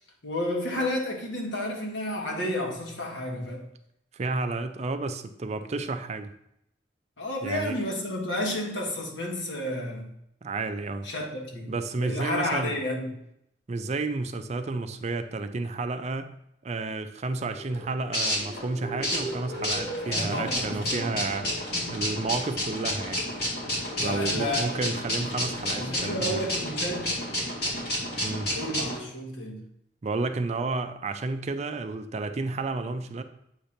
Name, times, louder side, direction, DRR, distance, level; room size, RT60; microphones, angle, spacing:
voice 1, 0.2-3.7 7.2-10.1 11.0-11.7 12.0-13.1 20.1-21.0 21.7-21.9 24.0-24.9 25.6-27.2 28.4-29.6, left 1 dB, 85° left, 0 dB, 1.4 m, -31 dB
voice 2, 4.1-6.3 7.4-7.8 10.4-11.1 11.7-12.8 13.7-16.3 16.6-23.2 24.0-26.4 28.2-28.5 30.0-33.2, right 3 dB, 35° right, 9 dB, 0.4 m, -31 dB
sound 1, 17.4-29.0, equal, 60° left, 1.9 m, -31 dB
7.9 x 2.9 x 5.1 m, 0.77 s
head